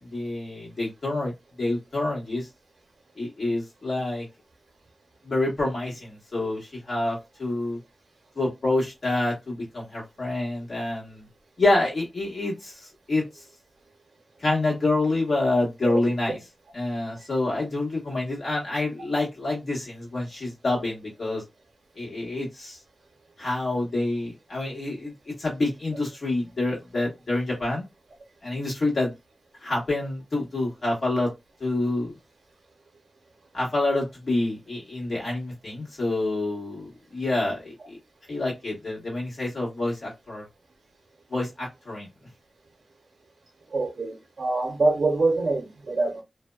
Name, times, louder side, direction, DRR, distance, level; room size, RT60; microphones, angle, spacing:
voice 1, 0.1-1.3 1.6-2.5 3.2-4.3 5.2-7.8 8.3-11.2 11.6-13.2 14.4-16.4 16.7-21.4 22.0-22.8 23.4-27.8 28.4-29.1 29.6-31.3 31.6-32.1 33.5-38.0 38.3-40.4 41.3-42.1, left 2 dB, 65° left, 1.4 m, -27 dB
voice 2, 43.7-46.2, right 3 dB, 70° right, 0.6 m, -25 dB
2.6 x 2.1 x 2.2 m
wide cardioid pair, 70°, 0 cm